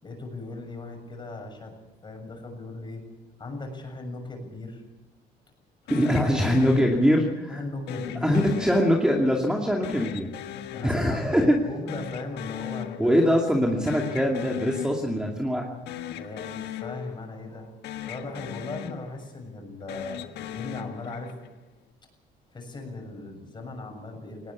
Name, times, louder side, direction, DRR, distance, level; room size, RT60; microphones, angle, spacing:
voice 1, 0.0-1.8 2.0-3.0 3.4-4.8 5.8-5.9 7.5-8.8 10.7-13.8 16.1-21.3 22.5-24.5, left 2 dB, 25° left, 4 dB, 7.0 m, -38 dB
sound 1, 5.9-7.4 7.9-9.4 9.8-11.6 11.9-13.4 13.7-15.4 15.8-17.6 17.8-19.4 19.8-21.6, left 11 dB, 75° left, 1.5 m, -38 dB
voice 2, 5.9-7.6 8.2-10.3 10.8-11.6 13.0-15.7, equal, 5° right, 0 dB, 2.5 m, -23 dB
19.5 x 18.0 x 8.4 m, 1.1 s
cardioid pair, 110°, 17 cm